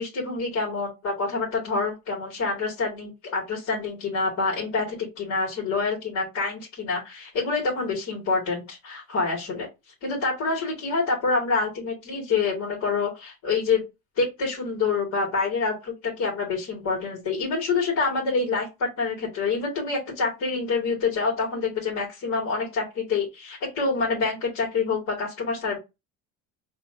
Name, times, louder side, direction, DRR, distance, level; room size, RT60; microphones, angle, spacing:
voice 1, 0.0-9.7 10.0-13.8 14.2-25.8, left 4 dB, 60° left, -3 dB, 2.9 m, -27 dB
5.0 x 3.4 x 2.9 m, 0.23 s
supercardioid pair, 95°, 31 cm